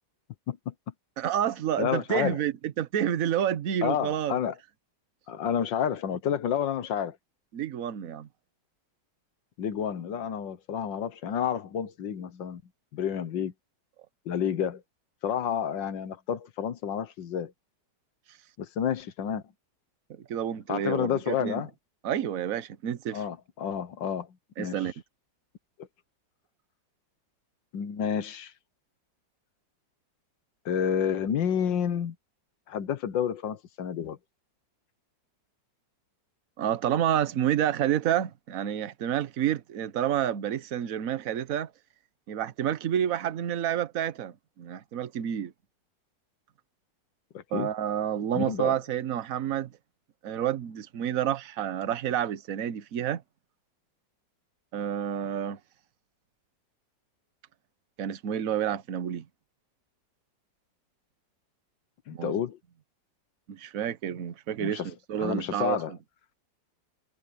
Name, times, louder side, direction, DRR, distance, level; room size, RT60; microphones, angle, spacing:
voice 1, 1.2-4.4 7.5-8.3 20.1-21.6 22.0-23.2 24.6-24.9 36.6-41.7 42.3-45.5 47.5-49.7 50.2-53.2 54.7-55.6 58.0-59.2 62.1-62.4 63.5-65.8, right 10 dB, 55° right, 1.3 m, -29 dB
voice 2, 1.8-2.4 3.8-4.5 5.3-7.2 9.6-12.6 12.9-13.5 14.3-14.8 15.2-17.5 18.6-19.4 20.7-21.7 23.1-24.3 24.6-24.9 27.7-28.5 30.6-32.1 32.7-34.2 47.3-47.7 48.3-48.8 62.1-62.6 64.6-64.9 65.2-65.9, left 8 dB, 80° left, 1.8 m, -30 dB
omnidirectional pair, 2.0 m